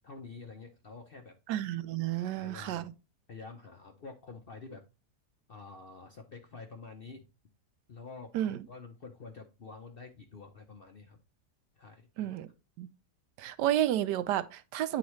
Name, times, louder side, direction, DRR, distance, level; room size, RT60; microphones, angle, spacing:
voice 1, 0.0-1.3 2.2-2.9 3.3-4.8 5.5-7.3 7.9-11.2 11.8-12.4, left 4 dB, 50° left, 0.7 m, -48 dB
voice 2, 1.5-2.9 8.3-8.6 12.2-12.5 12.8-12.9 13.4-15.0, right 12 dB, 80° right, 1.2 m, -31 dB
9.5 x 3.9 x 3.1 m
omnidirectional pair, 1.8 m